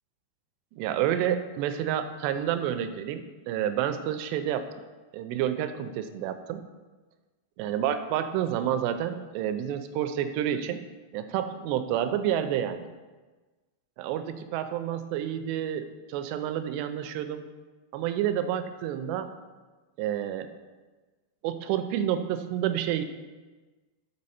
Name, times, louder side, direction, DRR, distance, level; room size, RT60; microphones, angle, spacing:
voice 1, 0.7-4.7 5.1-6.7 7.6-10.8 11.1-12.9 14.0-17.5 17.9-19.3 20.0-20.5 21.4-23.0, right 10 dB, 85° right, 10 dB, 2.6 m, -29 dB
6.4 x 6.4 x 4.2 m, 1.3 s
omnidirectional pair, 5.0 m